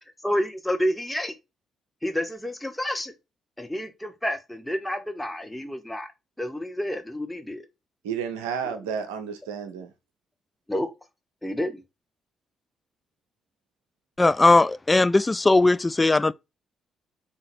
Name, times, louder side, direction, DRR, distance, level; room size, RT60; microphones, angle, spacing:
voice 1, 0.2-1.3 2.0-3.1 3.6-6.1 6.4-7.6 10.7-10.9 11.4-11.8, equal, 5° left, 1.3 m, -29 dB
voice 2, 8.0-9.9, right 7 dB, 80° right, 0.7 m, -31 dB
voice 3, 14.2-16.3, left 2 dB, 25° left, 0.3 m, -19 dB
3.7 x 3.0 x 4.4 m
figure-of-eight pair, 40°, 0 cm